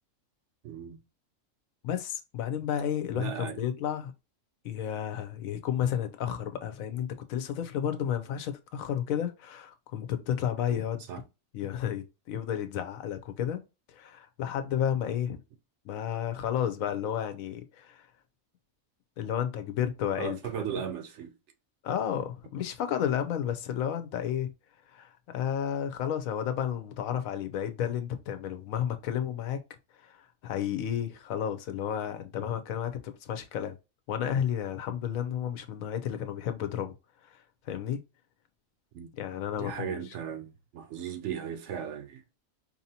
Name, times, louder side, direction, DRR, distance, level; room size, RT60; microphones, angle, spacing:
voice 1, 0.6-1.0 3.1-3.6 11.1-11.2 20.2-21.3 38.9-39.1 39.6-42.2, right 8 dB, 65° right, 0.8 m, -36 dB
voice 2, 1.8-4.1 4.6-11.0 11.5-13.6 13.9-15.4 15.8-18.1 19.2-20.7 21.8-24.5 24.9-29.6 29.9-33.8 34.1-36.9 37.2-38.0 39.2-40.0, left 9 dB, 80° left, 1.1 m, -32 dB
4.6 x 2.7 x 2.8 m
omnidirectional pair, 1.4 m